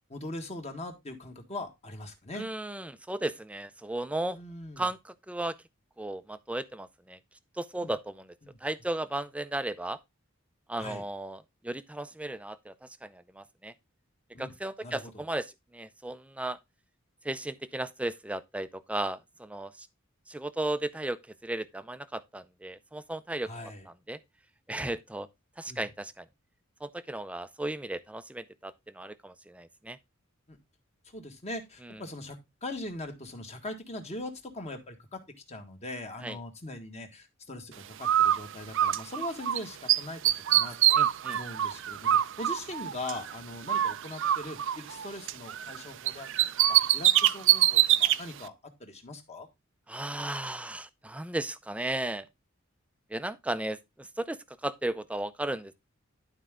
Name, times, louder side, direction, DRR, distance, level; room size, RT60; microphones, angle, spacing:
voice 1, 0.1-2.4 4.3-4.9 7.8-7.9 8.4-8.6 10.8-11.0 14.3-14.5 14.8-15.1 23.4-23.8 25.7-25.8 30.5-30.6 31.0-35.2 35.5-41.0 41.3-48.5 48.8-49.5, left 2 dB, 35° left, 1.6 m, -41 dB
voice 2, 2.4-4.4 4.8-5.6 6.0-7.2 7.5-8.3 8.6-10.0 10.7-13.7 14.4-16.6 17.2-19.9 20.3-24.2 24.7-25.3 25.6-26.3 26.8-30.0 31.8-32.0 36.2-36.4 41.0-41.4 49.9-52.3 53.1-55.7, right 1 dB, 5° right, 0.5 m, -35 dB
Bird, 38.0-39.6 39.9-43.3 43.7-45.8 46.1-48.2, right 12 dB, 65° right, 0.5 m, -25 dB
11.5 x 4.5 x 3.6 m
head